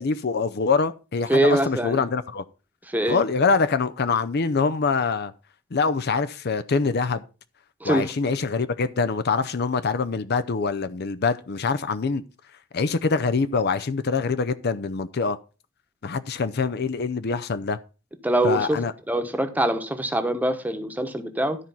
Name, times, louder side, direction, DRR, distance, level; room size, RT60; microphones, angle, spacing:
voice 1, 0.0-2.4 3.1-5.3 5.7-7.2 7.8-12.2 12.7-15.4 16.0-17.8 18.4-18.9, left 4 dB, 50° left, 0.5 m, -24 dB
voice 2, 1.3-2.0 2.9-3.2 7.8-8.1 18.2-18.8 19.1-21.6, right 1 dB, 10° right, 1.0 m, -23 dB
12.5 x 4.6 x 5.5 m
head